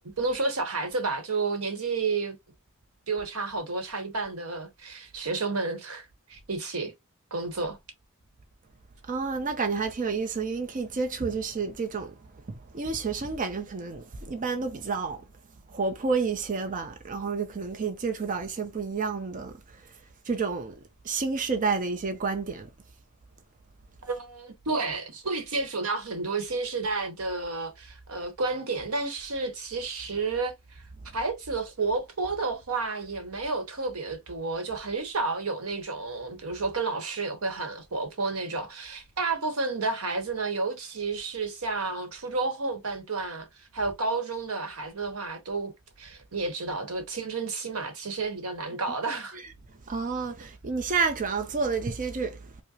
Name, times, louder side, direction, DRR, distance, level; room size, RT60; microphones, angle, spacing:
voice 1, 0.2-2.4 3.1-6.9 7.3-7.8 24.0-30.8 31.1-45.7 46.0-49.4, right 3 dB, 90° right, 1.1 m, -31 dB
voice 2, 9.0-15.3 15.7-20.7 21.0-22.7 49.3-52.6, right 4 dB, 40° right, 0.6 m, -30 dB
4.7 x 2.1 x 2.8 m
head